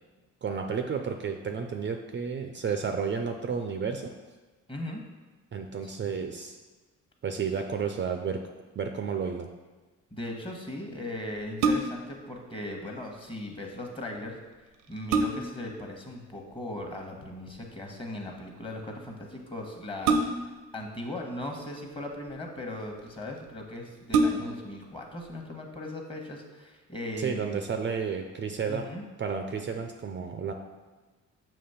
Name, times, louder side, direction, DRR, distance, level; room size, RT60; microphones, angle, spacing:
voice 1, 0.4-4.1 5.5-6.6 7.2-8.4 8.8-9.5 27.2-28.8 29.2-30.5, right 6 dB, 40° right, 5 dB, 0.5 m, -31 dB
voice 2, 4.7-5.0 5.8-5.9 10.1-14.4 14.9-20.4 20.7-27.7 28.7-29.0, left 1 dB, 15° left, 1 dB, 1.2 m, -38 dB
sound 1, 11.4-12.2 14.2-14.3 14.7-15.7 17.2-17.6 20.0-20.7 21.6-22.3 23.1-23.2 23.5-23.6 24.0-24.7 25.2-25.3, right 3 dB, 85° right, 0.7 m, -27 dB
6.8 x 3.0 x 5.6 m, 1.3 s
cardioid pair, 90°, 30 cm